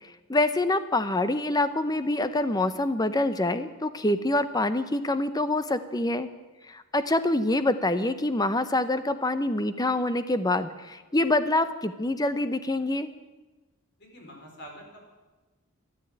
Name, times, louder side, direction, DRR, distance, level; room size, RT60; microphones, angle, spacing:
voice 1, 0.3-6.3 6.7-13.1, left 2 dB, 20° left, 12 dB, 0.7 m, -26 dB
voice 2, 14.0-15.1, equal, 50° left, 1 dB, 4.6 m, -46 dB
13.5 x 12.0 x 8.9 m, 1.2 s
head